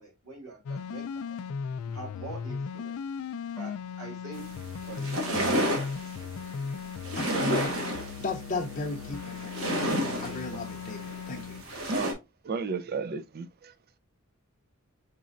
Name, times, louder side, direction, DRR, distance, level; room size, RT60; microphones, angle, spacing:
voice 1, 0.0-1.4 1.8-3.0 3.5-4.5 4.9-6.3, right 3 dB, 85° right, 2.8 m, -45 dB
sound 1, 0.7-11.6, left 6 dB, 70° left, 0.4 m, -37 dB
sound 2, 4.3-12.1, equal, 65° right, 1.6 m, -31 dB
voice 2, 7.1-11.6, left 3 dB, 35° left, 0.6 m, -37 dB
voice 3, 12.4-13.7, right 5 dB, 45° right, 0.4 m, -33 dB
5.2 x 4.1 x 2.4 m
head